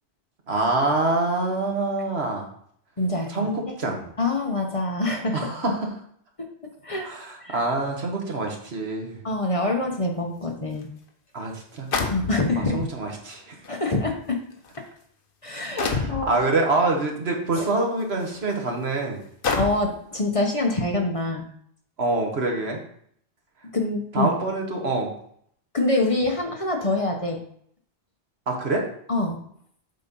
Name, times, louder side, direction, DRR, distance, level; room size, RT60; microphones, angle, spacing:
voice 1, 0.5-2.5 3.3-4.0 5.3-5.9 7.0-9.2 11.3-11.9 12.6-13.6 15.8-19.2 22.0-22.8 24.1-25.1 28.5-28.9, right 2 dB, 70° right, 1 dB, 1.7 m, -25 dB
voice 2, 3.0-3.5 4.2-5.5 6.8-7.1 7.4-7.6 9.2-10.9 12.1-12.8 13.7-14.4 15.4-16.5 17.6-17.7 19.6-21.5 23.7-24.3 25.7-27.4 29.1-29.4, left 2 dB, 35° left, 2 dB, 1.0 m, -25 dB
sound 1, 10.8-10.9 11.9-12.7 13.6-13.7 14.5-14.8 15.8-16.3 17.6-17.7 18.3-18.4 19.4-20.0, left 4 dB, 60° left, 1.1 m, -27 dB
7.6 x 4.3 x 5.4 m, 0.65 s
omnidirectional pair, 1.1 m